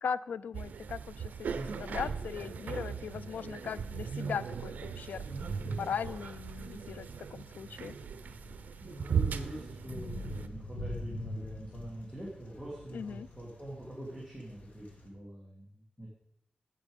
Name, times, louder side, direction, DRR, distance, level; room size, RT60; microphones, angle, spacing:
voice 1, 0.0-5.3 5.7-7.9 12.9-13.3, left 6 dB, 80° left, 17 dB, 0.4 m, -39 dB
sound 1, 0.5-10.5, right 6 dB, 80° right, 0.7 m, -38 dB
sound 2, 1.3-15.1, left 1 dB, 60° left, 1.8 m, -47 dB
voice 2, 5.2-5.8 8.8-16.1, right 1 dB, ahead, -5 dB, 2.4 m, -44 dB
10.5 x 8.2 x 5.2 m, 0.79 s
wide cardioid pair, 145°, 3 cm